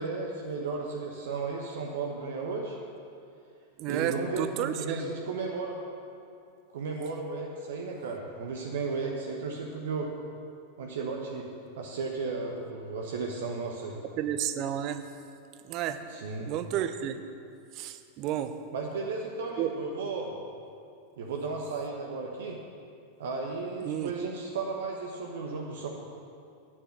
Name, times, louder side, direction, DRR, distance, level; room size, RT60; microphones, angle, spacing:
voice 1, 0.0-2.8 3.9-5.8 6.7-10.1 10.8-11.5 11.8-14.0 16.1-16.5 18.7-20.3 21.2-22.6 23.2-25.9, right 4 dB, 60° right, 0 dB, 1.1 m, -34 dB
voice 2, 3.8-5.1 14.2-15.0 15.7-16.0 16.5-17.2 17.8-18.5 19.6-19.7 23.8-24.1, right 10 dB, 40° right, 10 dB, 0.7 m, -31 dB
9.4 x 7.3 x 8.0 m, 2.4 s
figure-of-eight pair, 90°, 0 cm